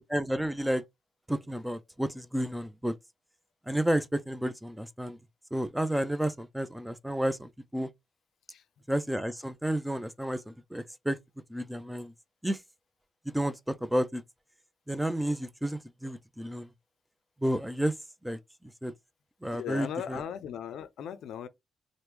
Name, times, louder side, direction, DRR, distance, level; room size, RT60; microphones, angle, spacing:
voice 1, 0.1-0.8 1.3-2.9 3.7-5.2 5.5-7.9 8.9-11.2 11.5-12.1 12.4-12.6 13.3-14.2 14.9-16.7 17.4-17.9 18.2-18.4 18.8-18.9 19.4-20.2, right 1 dB, 5° right, 0.4 m, -31 dB
voice 2, 19.5-21.5, left 8 dB, 85° left, 0.3 m, -37 dB
2.9 x 2.0 x 3.3 m
cardioid pair, 90°, 0 cm